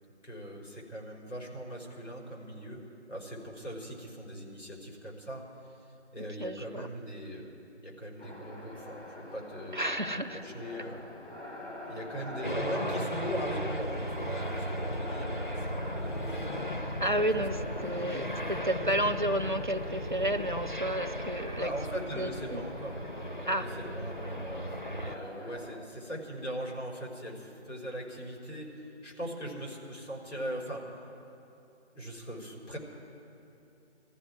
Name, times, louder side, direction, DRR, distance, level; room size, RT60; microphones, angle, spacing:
voice 1, 0.2-2.8 3.1-5.4 6.1-7.5 7.8-9.9 10.4-11.1 11.9-16.5 17.3-17.4 17.9-18.1 21.6-23.0 23.4-30.9 31.9-32.8, equal, 85° left, -2 dB, 4.6 m, -40 dB
voice 2, 6.2-6.9 9.7-10.4 17.0-21.7 22.2-22.6 23.5-23.7, right 1 dB, 45° right, 6 dB, 0.6 m, -31 dB
sound 1, 8.2-25.8, left 1 dB, 70° left, 4.0 m, -45 dB
sound 2, 12.4-25.2, equal, 45° left, 0.6 m, -36 dB
20.5 x 14.5 x 4.7 m, 2.9 s
figure-of-eight pair, 175°, 35 cm